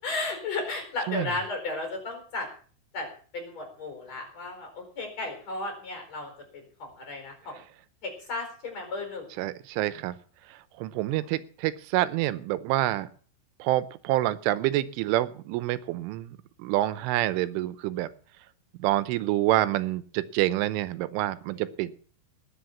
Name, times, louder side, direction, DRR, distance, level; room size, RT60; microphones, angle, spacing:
voice 1, 0.0-2.5 2.9-3.1 3.3-7.5 8.0-9.3, left 3 dB, 35° left, 4 dB, 5.1 m, -34 dB
voice 2, 9.4-10.1 10.5-13.1 13.6-18.1 18.8-21.9, right 15 dB, 85° right, 15 dB, 3.3 m, -27 dB
19.5 x 7.1 x 7.2 m, 0.43 s
omnidirectional pair, 5.5 m